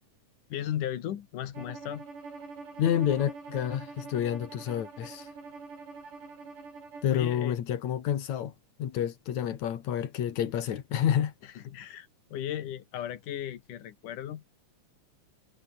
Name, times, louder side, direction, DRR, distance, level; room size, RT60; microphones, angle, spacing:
voice 1, 0.5-2.1 7.1-7.5 11.6-14.4, left 11 dB, 80° left, 3.2 m, -36 dB
Bowed string instrument, 1.5-7.2, right 4 dB, 85° right, 8.1 m, -45 dB
voice 2, 2.8-5.3 7.0-8.5 8.8-11.3, left 10 dB, 65° left, 3.0 m, -29 dB
omnidirectional pair, 3.6 m